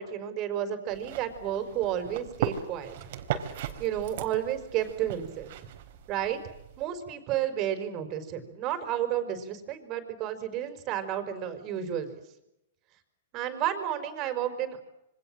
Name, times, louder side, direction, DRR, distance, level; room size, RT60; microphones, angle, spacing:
voice 1, 0.0-3.1 3.8-5.7 6.1-6.4 6.8-12.2 13.3-14.8, right 11 dB, 35° right, 8 dB, 5.1 m, -31 dB
sound 1, 0.9-6.8, right 10 dB, 55° right, 4.2 m, -37 dB
28.0 x 25.0 x 7.7 m, 0.85 s
hypercardioid pair, 145°, 0 cm